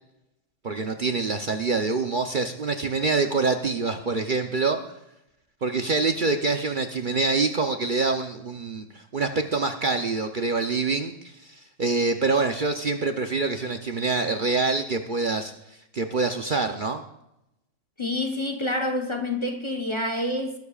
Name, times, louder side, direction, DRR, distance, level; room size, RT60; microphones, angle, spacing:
voice 1, 0.6-4.8 5.6-15.5 15.9-17.0, right 3 dB, 45° right, 0.8 m, -25 dB
voice 2, 18.0-20.6, left 1 dB, 25° left, 1.0 m, -27 dB
19.5 x 12.0 x 2.4 m
omnidirectional pair, 1.3 m